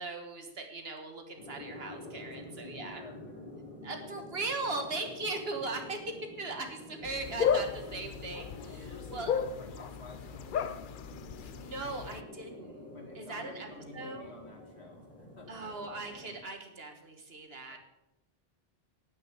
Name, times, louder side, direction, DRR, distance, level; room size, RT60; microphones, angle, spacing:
voice 1, 0.0-3.0 3.8-9.3 11.4-13.7 13.9-14.3 15.5-17.8, right 3 dB, 70° right, 5 dB, 1.8 m, -39 dB
sound 1, 1.4-16.4, left 1 dB, 5° left, 2.9 m, -48 dB
voice 2, 2.2-3.5 8.8-10.9 12.9-15.5 17.7-17.8, left 3 dB, 80° left, 1 dB, 2.6 m, -51 dB
sound 2, 7.0-12.2, left 7 dB, 60° left, 0.7 m, -34 dB
9.2 x 8.7 x 7.0 m, 0.95 s
omnidirectional pair, 1.1 m